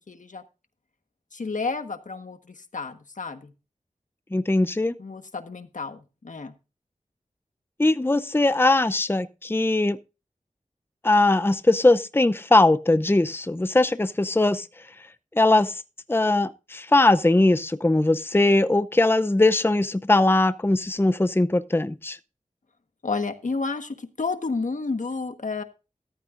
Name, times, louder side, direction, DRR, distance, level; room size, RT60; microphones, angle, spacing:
voice 1, 0.1-0.4 1.3-3.5 5.0-6.5 23.0-25.6, left 4 dB, 80° left, 1.4 m, -31 dB
voice 2, 4.3-4.9 7.8-10.0 11.0-14.7 15.4-15.8 16.1-22.2, left 2 dB, 15° left, 0.6 m, -20 dB
14.0 x 11.5 x 2.5 m
wide cardioid pair, 60°, 13 cm